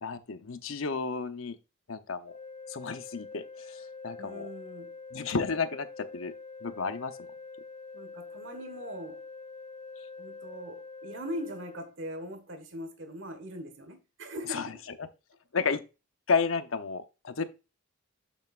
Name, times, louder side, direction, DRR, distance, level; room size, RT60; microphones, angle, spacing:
voice 1, 0.0-1.6 1.9-2.3 2.7-4.5 5.1-6.3 6.6-7.2 14.5-14.7 15.5-15.8 16.3-17.4, left 5 dB, 85° left, 0.8 m, -32 dB
sound 1, 2.2-11.9, left 4 dB, 35° left, 0.7 m, -45 dB
voice 2, 4.2-5.0 7.9-9.2 10.2-14.8, equal, 70° right, 1.5 m, -41 dB
8.1 x 7.1 x 2.4 m
head